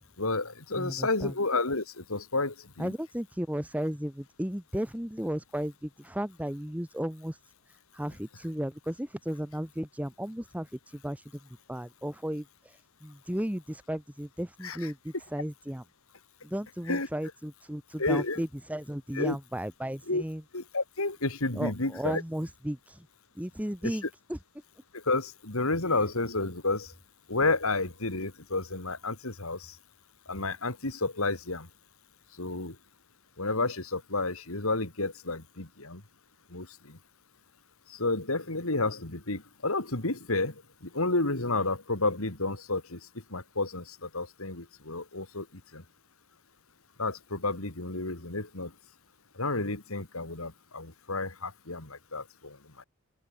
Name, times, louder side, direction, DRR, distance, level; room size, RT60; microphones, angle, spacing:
voice 1, 0.2-2.9 14.6-14.9 16.9-17.1 18.0-18.4 19.1-19.4 20.1-20.2 20.5-22.2 23.8-24.0 24.9-26.9 27.3-29.8 30.3-31.7 32.4-32.8 33.4-36.0 36.5-37.0 37.9-40.5 40.8-43.0 43.3-45.5 45.7-45.8 47.0-48.7 49.4-52.8, left 2 dB, 65° left, 3.1 m, -31 dB
voice 2, 0.7-1.3 2.8-7.3 7.9-10.7 10.9-11.2 11.7-12.4 13.0-15.8 16.4-20.4 21.5-23.1 23.4-24.0 24.3-24.4, equal, 5° right, 1.5 m, -34 dB
open air
head